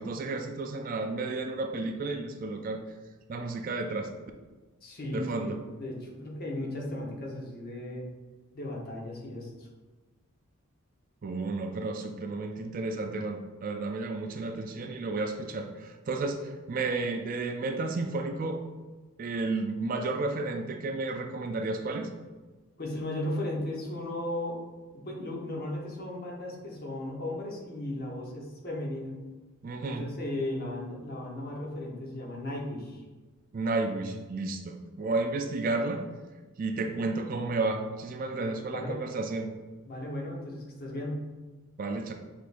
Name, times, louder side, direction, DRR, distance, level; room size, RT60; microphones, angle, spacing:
voice 1, 0.0-2.8 3.3-4.1 5.1-5.6 11.2-18.6 19.2-22.1 29.6-30.0 33.5-36.0 36.6-39.5 41.8-42.1, right 3 dB, 40° right, 5 dB, 0.3 m, -32 dB
voice 2, 4.8-5.5 5.8-8.1 8.5-9.7 22.8-24.6 24.9-29.1 29.8-33.0 38.7-39.0 39.9-41.3, left 1 dB, 45° left, -2 dB, 0.9 m, -36 dB
6.0 x 3.5 x 2.5 m, 1.3 s
head